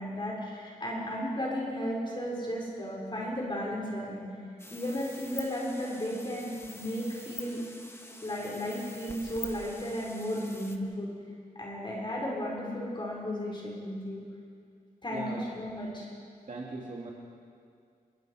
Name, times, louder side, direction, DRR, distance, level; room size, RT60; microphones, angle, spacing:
voice 1, 0.0-4.3 4.7-7.6 8.2-11.1 11.6-14.2 15.0-16.1, equal, 35° left, -4 dB, 5.4 m, -34 dB
sound 1, 4.6-10.8, left 1 dB, 15° left, 1.6 m, -46 dB
voice 2, 15.1-15.5 16.5-17.1, right 3 dB, 60° right, -3 dB, 2.5 m, -39 dB
30.0 x 20.5 x 5.0 m, 2.2 s
wide cardioid pair, 115°, 15 cm